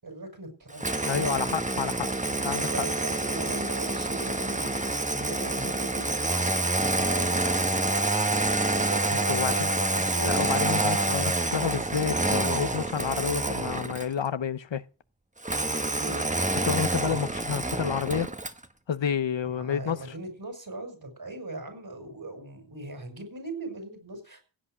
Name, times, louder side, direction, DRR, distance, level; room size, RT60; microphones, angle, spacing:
voice 1, 0.0-1.5 2.6-6.1 6.4-10.6 16.0-16.2 19.4-24.5, right 2 dB, 50° right, 5.6 m, -40 dB
Engine starting, 0.8-14.2 15.4-18.6, right 2 dB, 15° right, 1.2 m, -27 dB
voice 2, 1.0-2.1 2.4-2.7 9.3-9.7 10.2-14.8 16.6-18.3 18.9-20.0, left 7 dB, 70° left, 0.8 m, -29 dB
16.5 x 8.3 x 6.1 m
wide cardioid pair, 60°, 46 cm